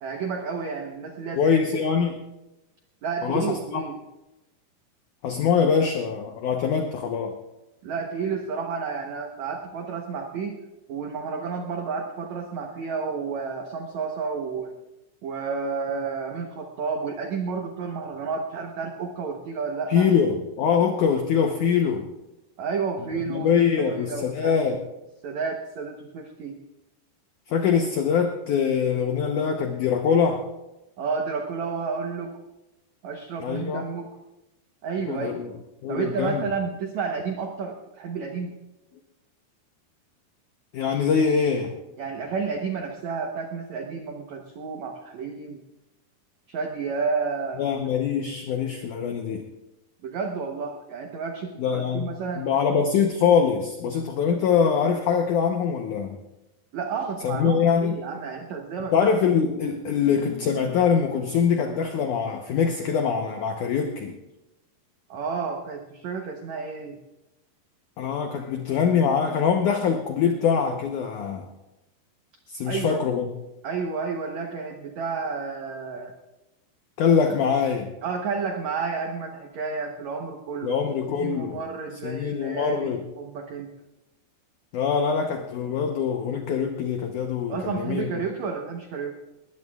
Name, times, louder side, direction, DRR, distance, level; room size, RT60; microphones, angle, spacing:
voice 1, 0.0-1.8 3.0-4.0 7.8-10.6 10.9-14.7 15.2-20.1 22.6-23.5 23.8-24.8 25.2-26.6 31.0-32.3 33.0-34.2 34.8-35.4 35.9-38.5 42.0-45.6 46.5-47.6 50.0-52.5 56.7-59.0 65.1-67.0 72.6-73.0 73.6-76.1 78.0-80.8 81.2-82.9 83.2-83.7 87.5-89.1, right 5 dB, 80° right, 3 dB, 1.6 m, -31 dB
voice 2, 1.4-2.2 3.2-3.8 5.2-7.4 19.9-22.1 23.3-24.8 27.5-30.4 33.4-33.8 35.1-35.5 35.8-36.4 40.7-41.7 47.6-49.4 51.6-52.1 52.3-56.2 57.2-58.0 58.9-64.2 68.0-71.5 72.5-73.3 77.0-77.9 80.6-81.6 82.0-83.0 84.7-88.1, left 6 dB, 80° left, 4 dB, 1.7 m, -23 dB
20.0 x 19.5 x 2.4 m, 0.98 s
omnidirectional pair, 4.8 m